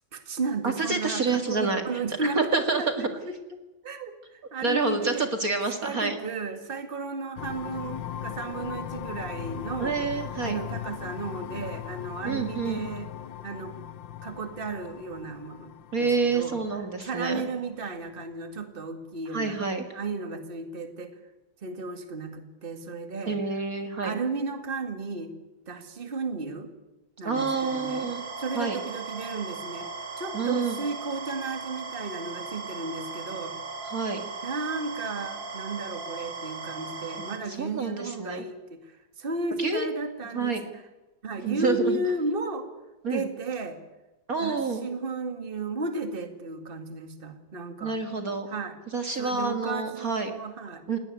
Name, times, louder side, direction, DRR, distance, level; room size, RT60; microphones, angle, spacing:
voice 1, 0.1-3.3 3.8-5.3 5.8-10.0 10.4-13.1 13.4-13.7 14.2-15.7 16.0-16.6 17.0-19.5 19.9-21.1 21.6-23.4 24.0-25.3 25.7-26.7 27.2-28.1 28.4-29.9 30.2-33.6 34.4-40.8 41.2-42.7 43.1-43.8 44.4-48.0 48.5-48.8 49.2-50.9, right 3 dB, 25° right, 8 dB, 2.3 m, -34 dB
voice 2, 0.6-1.8 2.2-3.1 4.6-6.2 9.8-10.6 12.2-12.9 15.9-17.4 19.3-19.8 23.3-24.1 27.2-28.2 28.6-28.8 30.3-30.8 33.8-34.2 37.5-38.4 39.6-39.9 40.3-40.6 41.4-42.0 43.0-43.2 44.3-44.9 47.8-48.5 48.9-50.3 50.9-51.0, right 4 dB, 45° right, 6 dB, 2.3 m, -28 dB
sound 1, 7.4-17.9, left 10 dB, 70° left, 1.7 m, -39 dB
sound 2, 27.3-37.4, right 4 dB, 70° right, 3.9 m, -38 dB
20.5 x 18.0 x 9.4 m, 1.1 s
omnidirectional pair, 2.1 m